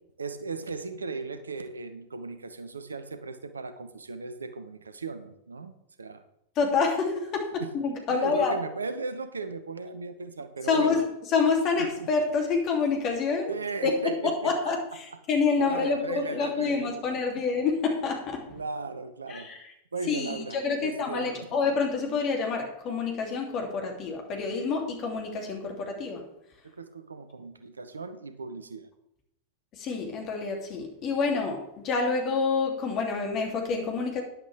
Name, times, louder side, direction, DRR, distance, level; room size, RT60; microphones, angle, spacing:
voice 1, 0.2-6.2 7.6-7.7 8.1-11.0 13.5-14.7 15.6-17.0 18.5-19.5 19.9-21.5 26.8-28.9, right 3 dB, 75° right, 11 dB, 0.9 m, -37 dB
voice 2, 6.6-8.6 10.6-13.5 13.8-13.9 14.4-18.4 19.3-19.7 20.1-26.2 29.7-34.2, left 4 dB, 35° left, 2 dB, 2.8 m, -27 dB
12.0 x 10.5 x 3.4 m, 0.81 s
figure-of-eight pair, 90°, 0 cm